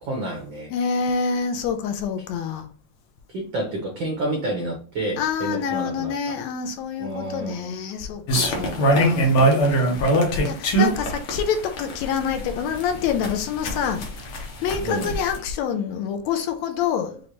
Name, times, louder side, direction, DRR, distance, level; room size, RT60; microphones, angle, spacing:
voice 1, 0.0-0.7 3.3-6.3 7.0-7.7 8.4-8.9 14.8-15.1, right 1 dB, 85° right, 1.0 m, -30 dB
voice 2, 0.7-2.7 5.2-9.4 10.4-14.4 14.6-17.2, left 7 dB, 80° left, 1.8 m, -27 dB
sound 1, 8.3-15.4, right 1 dB, 60° left, 1.6 m, -21 dB
6.0 x 2.5 x 2.9 m
omnidirectional pair, 3.3 m